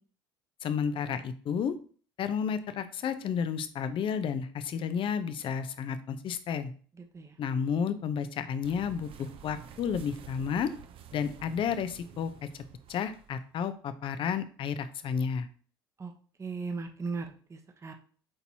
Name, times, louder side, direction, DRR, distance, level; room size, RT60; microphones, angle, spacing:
voice 1, 0.6-1.7 2.2-6.7 7.4-10.7 11.1-12.6 12.9-15.5, left 7 dB, 45° left, 11 dB, 0.7 m, -32 dB
voice 2, 7.0-7.4 16.0-16.1 16.4-17.9, right 4 dB, 25° right, 5 dB, 1.0 m, -37 dB
sound 1, 8.6-13.5, right 8 dB, 45° right, 0.7 m, -50 dB
8.8 x 4.1 x 2.9 m, 0.43 s
hypercardioid pair, 65°, 12 cm